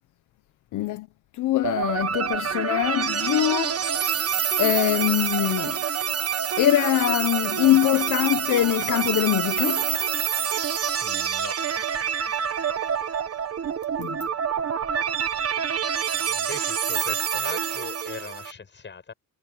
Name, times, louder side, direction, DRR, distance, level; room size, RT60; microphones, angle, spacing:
voice 1, 0.7-1.1 1.3-4.1 4.6-5.8 6.6-9.9 14.0-14.2, left 14 dB, 85° left, 1.2 m, -23 dB
sound 1, 1.6-18.5, right 8 dB, 55° right, 1.7 m, -27 dB
voice 2, 11.0-11.6 12.6-13.3 14.9-15.8 16.2-19.1, left 5 dB, 40° left, 6.9 m, -41 dB
cardioid pair, 90°, 30 cm